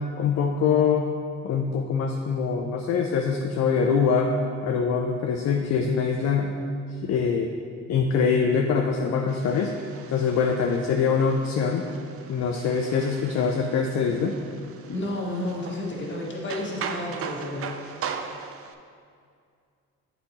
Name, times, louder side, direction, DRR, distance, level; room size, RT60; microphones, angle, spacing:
voice 1, 0.2-1.1 1.4-4.3 4.6-6.5 7.0-7.5 7.9-9.7 10.1-11.9 12.3-14.4, left 6 dB, 60° left, 2 dB, 0.5 m, -24 dB
sound 1, 9.3-18.7, right 6 dB, 50° right, 0.5 m, -39 dB
voice 2, 14.9-17.9, left 1 dB, 40° left, -3 dB, 1.6 m, -31 dB
7.6 x 4.2 x 4.1 m, 2.3 s
cardioid pair, 90°, 30 cm